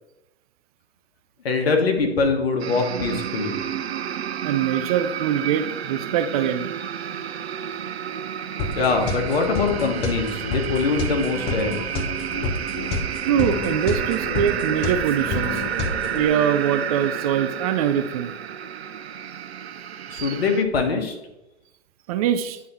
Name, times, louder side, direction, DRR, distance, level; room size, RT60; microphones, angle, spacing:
voice 1, 1.4-3.6 8.7-11.7 20.1-21.1, left 4 dB, 70° left, 4 dB, 1.5 m, -23 dB
sound 1, 2.6-20.6, right 9 dB, 75° right, 0.6 m, -30 dB
voice 2, 4.4-6.7 13.2-15.7 16.1-18.3 20.1-20.4 22.1-22.6, right 9 dB, 35° right, 10 dB, 0.4 m, -23 dB
sound 2, 8.6-16.3, left 3 dB, 30° left, 0.9 m, -29 dB
9.3 x 3.5 x 4.2 m, 0.96 s
hypercardioid pair, 115°, 32 cm